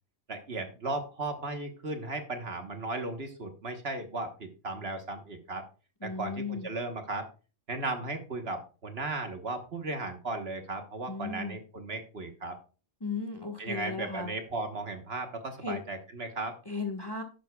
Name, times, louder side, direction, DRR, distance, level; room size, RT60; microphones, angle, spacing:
voice 1, 0.3-5.6 6.0-7.3 7.7-12.6 13.6-16.5, right 2 dB, 50° right, 5 dB, 1.4 m, -36 dB
voice 2, 6.0-6.7 11.1-11.6 13.0-14.3 15.6-15.8 16.6-17.2, left 4 dB, 20° left, 3 dB, 1.3 m, -36 dB
11.0 x 9.7 x 2.3 m, 0.34 s
omnidirectional pair, 1.4 m